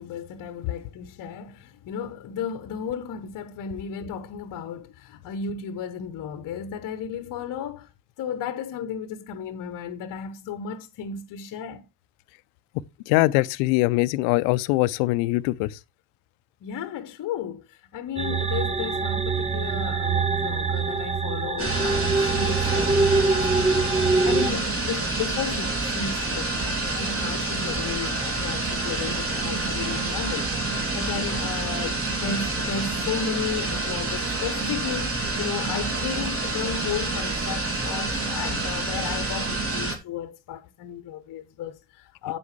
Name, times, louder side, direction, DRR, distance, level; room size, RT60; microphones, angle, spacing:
voice 1, 0.0-7.9 8.2-11.8 13.3-13.4 16.6-42.4, left 7 dB, 40° left, 1.0 m, -34 dB
voice 2, 13.1-15.8, left 20 dB, 60° left, 0.6 m, -22 dB
sound 1, 18.2-24.5, right 4 dB, 15° right, 0.7 m, -24 dB
sound 2, 21.6-40.0, right 2 dB, 30° right, 2.8 m, -28 dB
9.5 x 7.7 x 3.2 m
hypercardioid pair, 70°, 48 cm